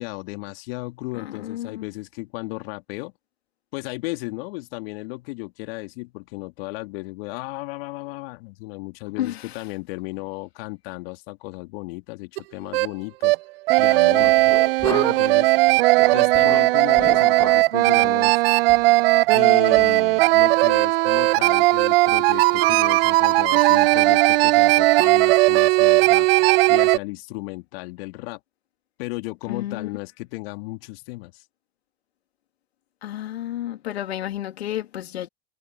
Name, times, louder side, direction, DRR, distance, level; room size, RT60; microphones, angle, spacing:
voice 1, 0.0-3.1 3.7-13.4 13.8-14.4 14.8-15.5 16.1-18.4 19.3-26.3 26.7-28.4 29.0-31.4, left 24 dB, 65° left, 2.5 m, -34 dB
voice 2, 1.1-1.8 9.2-9.6 14.1-14.3 29.5-29.9 33.0-35.3, left 12 dB, 80° left, 2.4 m, -31 dB
sound 1, 12.4-12.5 12.7-12.9 13.2-13.4 13.7-27.0, right 21 dB, 65° right, 0.8 m, -17 dB
sound 2, 14.2-15.3 15.7-17.7 18.0-18.2 18.7-18.9 19.3-19.4 19.8-20.0, left 3 dB, 10° left, 1.3 m, -36 dB
hypercardioid pair, 80°, 31 cm